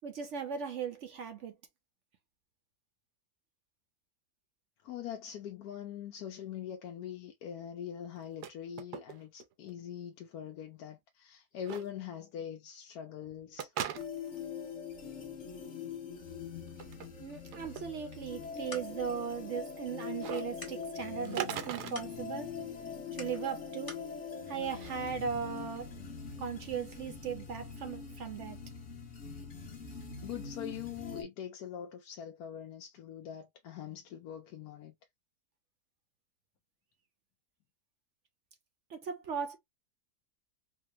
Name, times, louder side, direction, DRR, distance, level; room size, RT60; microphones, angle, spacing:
voice 1, 0.0-1.5 17.2-22.6 23.1-24.0 24.5-25.9 26.4-28.6 38.9-39.6, right 7 dB, 60° right, 0.8 m, -38 dB
voice 2, 4.8-13.7 30.2-34.9, left 9 dB, 75° left, 1.1 m, -43 dB
sound 1, 8.2-8.5 8.8-9.4 9.7-9.8 11.6-11.8 13.6-14.4 16.7-17.1 17.5-17.8 20.2-20.4 21.2-22.0, right 10 dB, 90° right, 1.2 m, -38 dB
sound 2, 14.0-31.2, left 6 dB, 50° left, 1.2 m, -43 dB
sound 3, 18.3-24.1, left 1 dB, 15° left, 1.1 m, -52 dB
4.2 x 2.2 x 2.9 m
omnidirectional pair, 1.7 m